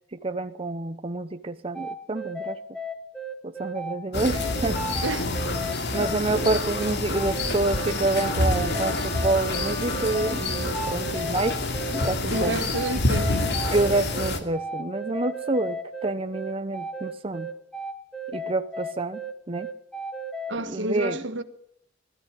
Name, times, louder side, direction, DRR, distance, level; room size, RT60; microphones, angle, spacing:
voice 1, 0.1-2.6 3.4-5.0 5.9-11.6 11.9-12.6 13.7-17.5 18.3-19.2 19.5-19.7 20.7-21.2, right 2 dB, 30° right, 0.9 m, -28 dB
sound 1, 1.7-20.6, right 1 dB, 5° left, 2.0 m, -34 dB
sound 2, 4.1-14.4, left 2 dB, 65° left, 2.6 m, -27 dB
voice 2, 5.0-5.4 6.3-6.4 12.3-13.6 20.5-21.4, right 1 dB, 70° right, 1.5 m, -30 dB
sound 3, 7.5-11.4, left 1 dB, 45° left, 5.4 m, -39 dB
19.5 x 13.5 x 9.9 m
head